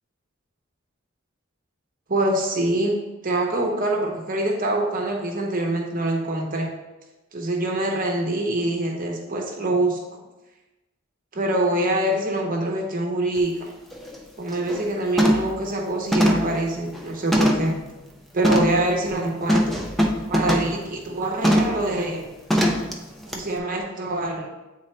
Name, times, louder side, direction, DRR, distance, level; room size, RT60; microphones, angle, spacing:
voice 1, 2.1-3.0 3.2-6.7 7.3-10.0 11.3-13.7 14.4-17.7 18.3-19.8 20.3-22.3 23.3-24.5, right 1 dB, 45° right, 0 dB, 0.9 m, -24 dB
sound 1, 13.4-13.5 13.9-14.2 14.5-14.8 15.2-15.6 16.1-17.8 18.4-18.8 19.5-20.8 21.4-21.8 22.5-22.9 23.3-23.4, equal, ahead, 0.6 m, -21 dB
8.6 x 3.8 x 3.3 m, 1.1 s
head